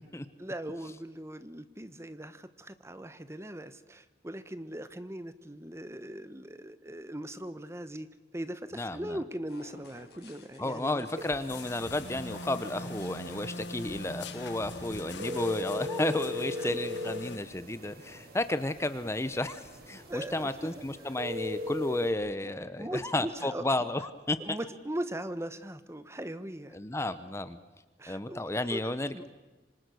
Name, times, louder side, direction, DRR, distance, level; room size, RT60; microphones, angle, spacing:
voice 1, 0.4-11.0 16.6-16.8 20.1-21.1 22.0-22.1 22.4-22.5 22.8-23.9 24.4-26.8 28.0-29.2, right 1 dB, 15° right, 13 dB, 1.1 m, -40 dB
voice 2, 8.7-9.2 10.6-24.4 26.7-27.6 28.1-29.1, left 1 dB, 15° left, 12 dB, 0.9 m, -32 dB
sound 1, 9.5-15.0, left 2 dB, 65° left, 5.3 m, -53 dB
sound 2, 11.1-22.1, left 2 dB, 55° right, 5.7 m, -40 dB
sound 3, 11.5-17.4, left 2 dB, 85° left, 1.4 m, -42 dB
26.5 x 26.0 x 6.4 m, 1.2 s
head